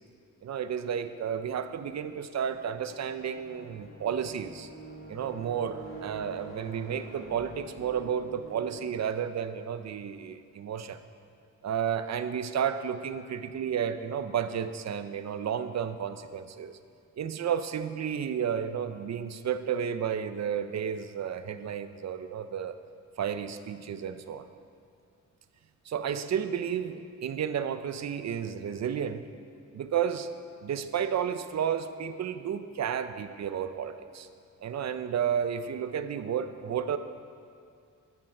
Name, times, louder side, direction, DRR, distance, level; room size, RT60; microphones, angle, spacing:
voice 1, 0.4-4.7 5.1-11.0 11.6-16.8 17.2-22.7 23.2-24.5 25.9-29.2 29.7-30.3 30.6-34.3 34.6-37.0, right 8 dB, 55° right, 10 dB, 0.6 m, -32 dB
sound 1, 0.7-9.0, right 2 dB, 40° left, 2.7 m, -48 dB
12.5 x 9.0 x 5.4 m, 2.3 s
wide cardioid pair, 140°, 31 cm